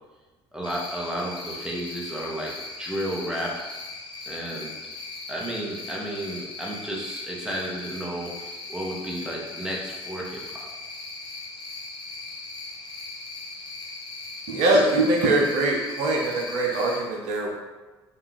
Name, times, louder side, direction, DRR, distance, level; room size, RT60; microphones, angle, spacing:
voice 1, 0.5-3.6 4.3-4.7 5.3-10.7, right 1 dB, 5° right, -3 dB, 1.1 m, -32 dB
Cricket, 0.6-17.0, left 3 dB, 35° left, 1.2 m, -39 dB
voice 2, 14.5-17.6, right 2 dB, 60° right, -1 dB, 0.6 m, -22 dB
5.2 x 2.4 x 2.9 m, 1.2 s
figure-of-eight pair, 55°, 14 cm